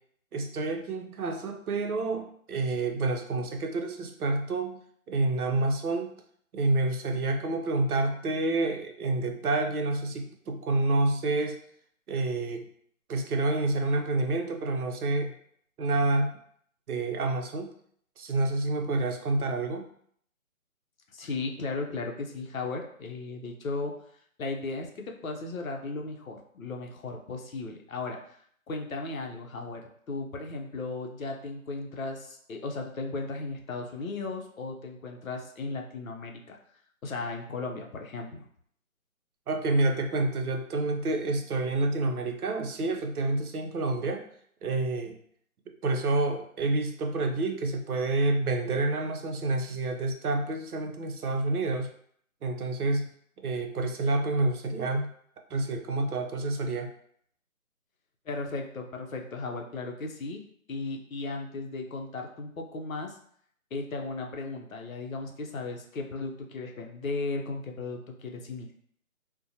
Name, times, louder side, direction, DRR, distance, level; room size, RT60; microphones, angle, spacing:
voice 1, 0.3-4.8 5.1-6.2 6.5-11.6 12.1-12.6 13.1-15.3 15.8-16.3 16.9-17.7 18.2-19.9 39.5-44.2 44.6-45.2 45.8-51.9 52.4-53.1 53.4-55.1 55.5-56.9, right 2 dB, 90° right, 4 dB, 0.6 m, -28 dB
voice 2, 21.1-24.0 24.4-28.4 28.7-36.6 37.0-38.5 58.3-60.4 60.7-63.2 63.7-68.7, left 3 dB, 70° left, 2 dB, 0.6 m, -36 dB
2.6 x 2.1 x 2.7 m, 0.64 s
figure-of-eight pair, 175°, 43 cm